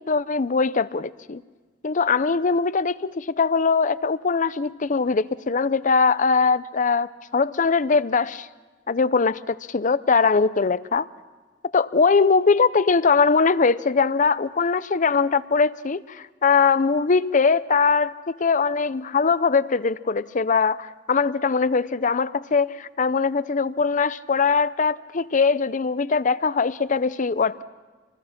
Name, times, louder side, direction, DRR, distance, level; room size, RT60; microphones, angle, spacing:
voice 1, 0.0-1.4 1.8-8.5 8.9-11.1 11.7-27.6, left 5 dB, 45° left, 16 dB, 0.6 m, -21 dB
28.0 x 20.5 x 5.9 m, 1.4 s
head